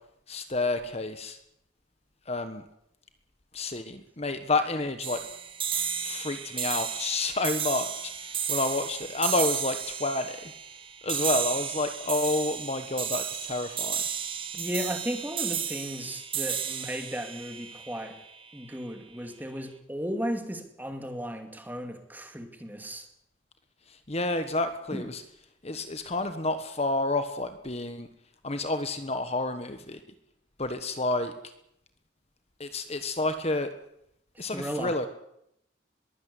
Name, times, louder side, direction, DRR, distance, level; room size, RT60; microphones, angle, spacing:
voice 1, 0.3-1.4 2.3-2.6 3.5-5.2 6.0-10.5 11.0-14.0 23.9-25.2 25.6-28.1 28.4-30.0 30.6-31.3 32.6-33.7 34.4-35.1, left 2 dB, 30° left, 9 dB, 1.3 m, -29 dB
sound 1, 5.0-18.5, right 8 dB, 25° right, 1.8 m, -33 dB
voice 2, 14.5-18.2 18.5-23.1 24.9-25.1 34.4-34.9, equal, 10° right, 6 dB, 2.4 m, -35 dB
22.0 x 16.5 x 8.4 m, 0.78 s
head